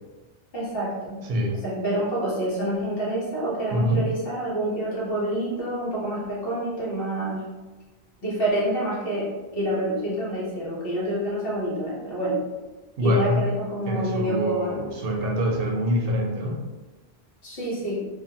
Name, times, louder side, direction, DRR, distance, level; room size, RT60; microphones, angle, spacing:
voice 1, 0.5-1.2 1.6-7.4 8.2-12.4 13.0-14.8 17.4-18.0, right 1 dB, 65° left, -7 dB, 1.2 m, -27 dB
voice 2, 1.2-1.6 3.7-4.0 13.0-13.5 13.9-16.6, equal, 70° right, -1 dB, 0.7 m, -25 dB
2.4 x 2.4 x 2.7 m, 1.2 s
omnidirectional pair, 1.1 m